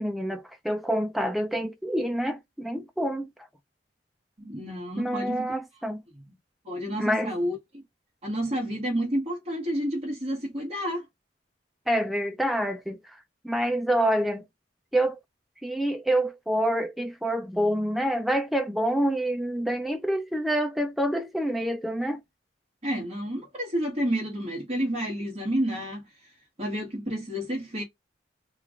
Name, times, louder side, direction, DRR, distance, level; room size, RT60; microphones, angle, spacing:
voice 1, 0.0-3.3 5.0-6.0 7.0-7.3 11.9-14.4 14.9-15.2 15.6-22.2, right 1 dB, ahead, 0.3 m, -27 dB
voice 2, 4.4-5.5 6.6-7.6 8.2-11.1 22.8-26.3 26.6-27.8, equal, 35° right, 1.4 m, -30 dB
3.0 x 2.4 x 3.6 m
head